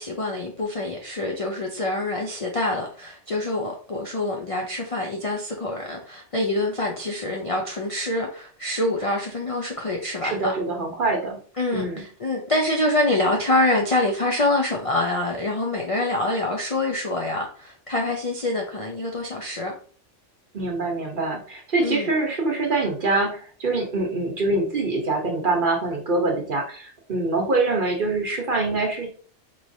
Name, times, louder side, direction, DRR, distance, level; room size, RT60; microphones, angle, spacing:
voice 1, 0.0-10.5 11.6-19.7 21.8-22.1, left 2 dB, 45° left, 0.5 m, -25 dB
voice 2, 10.2-11.4 11.7-12.0 20.5-29.1, right 3 dB, 45° right, 1.1 m, -24 dB
4.5 x 3.1 x 2.6 m
omnidirectional pair, 1.3 m